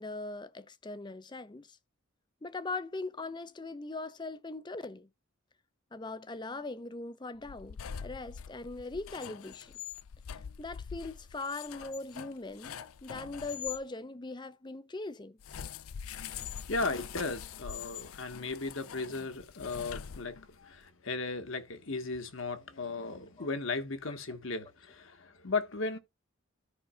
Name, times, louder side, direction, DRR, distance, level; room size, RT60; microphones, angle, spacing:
voice 1, 0.0-1.8 2.4-5.1 5.9-9.7 10.6-12.8 13.0-15.4 23.4-23.5 24.1-24.2, left 3 dB, 20° left, 0.5 m, -40 dB
sound 1, 7.4-13.8 15.4-20.6, left 8 dB, 85° left, 0.5 m, -44 dB
voice 2, 16.7-26.0, left 3 dB, 65° left, 1.3 m, -36 dB
13.5 x 5.3 x 2.3 m
head